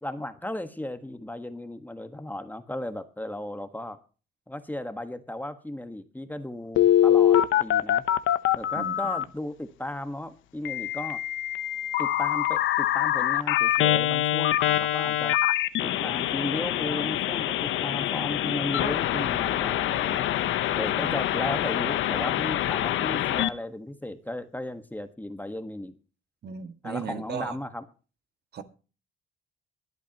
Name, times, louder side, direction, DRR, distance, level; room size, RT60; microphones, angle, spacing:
voice 1, 0.0-4.0 4.5-8.0 8.5-11.2 12.0-15.4 15.8-20.3 20.8-26.0 26.8-27.8, left 1 dB, 10° left, 1.5 m, -35 dB
Telephone, 6.8-9.2 10.7-23.5, left 12 dB, 85° left, 1.0 m, -24 dB
voice 2, 26.4-27.6 28.5-28.6, right 7 dB, 55° right, 2.0 m, -36 dB
23.0 x 8.4 x 3.0 m
cardioid pair, 90°, 20 cm